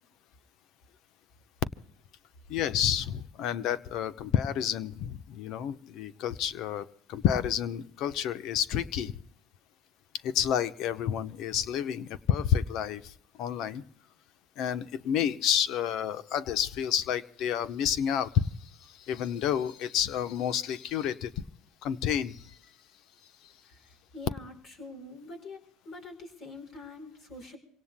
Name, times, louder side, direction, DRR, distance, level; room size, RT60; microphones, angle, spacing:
voice 1, 2.5-9.1 10.2-13.8 14.6-18.5 18.8-21.3 21.8-22.4, left 9 dB, 60° left, 14 dB, 0.9 m, -29 dB
voice 2, 24.1-25.6 25.9-27.6, left 2 dB, 45° left, 4 dB, 5.2 m, -44 dB
27.5 x 18.0 x 2.2 m, 0.64 s
supercardioid pair, 100°, 0 cm